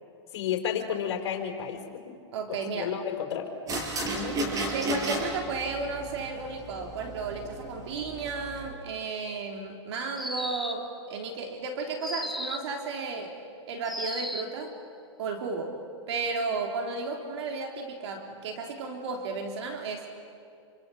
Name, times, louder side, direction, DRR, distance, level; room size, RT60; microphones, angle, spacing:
voice 1, 0.3-2.0 2.5-3.5 4.1-4.4, left 8 dB, 60° left, 2 dB, 5.1 m, -32 dB
voice 2, 2.3-2.9 4.7-13.4 13.7-14.7 15.2-15.8 16.1-20.1, right 4 dB, 65° right, 3 dB, 3.5 m, -33 dB
sound 1, 3.7-8.7, right 1 dB, 20° right, 5.4 m, -34 dB
sound 2, 10.2-11.0 12.0-12.8 13.9-14.6, equal, ahead, 1.3 m, -35 dB
28.0 x 25.5 x 7.7 m, 2.4 s
hypercardioid pair, 135°, 15 cm